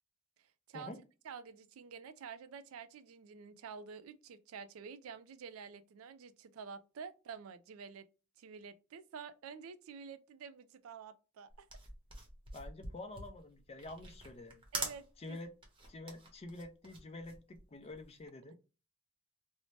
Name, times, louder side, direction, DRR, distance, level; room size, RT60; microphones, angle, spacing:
voice 1, 0.4-0.9 1.2-8.1 8.4-11.7 14.7-15.4, right 6 dB, 85° right, 0.4 m, -49 dB
sound 1, 11.5-18.2, right 3 dB, 25° right, 0.8 m, -45 dB
voice 2, 12.5-14.6 15.2-15.5 15.9-18.6, left 2 dB, 30° left, 0.4 m, -48 dB
2.7 x 2.1 x 3.1 m
head